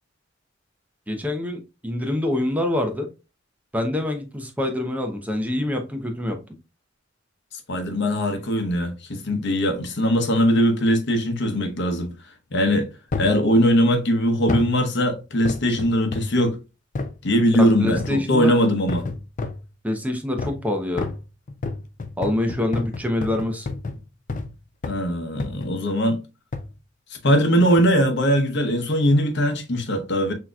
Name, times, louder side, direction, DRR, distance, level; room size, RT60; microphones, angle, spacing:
voice 1, 1.1-3.1 3.7-6.4 17.6-18.5 19.8-21.1 22.2-23.7, left 1 dB, 10° right, 0.6 m, -25 dB
voice 2, 7.7-12.1 12.5-12.9 13.2-16.6 17.2-19.1 24.9-26.2 27.1-30.3, equal, 60° left, 0.9 m, -20 dB
sound 1, 13.1-13.4 14.5-14.8 15.4-16.4 16.9-17.2 18.0-18.3 18.9-19.7 20.4-20.7 21.0-24.5 24.8-25.1 25.4-25.8 26.5-26.7 27.6-27.9 28.5-28.6, left 3 dB, 40° left, 0.4 m, -30 dB
6.1 x 2.8 x 2.3 m
head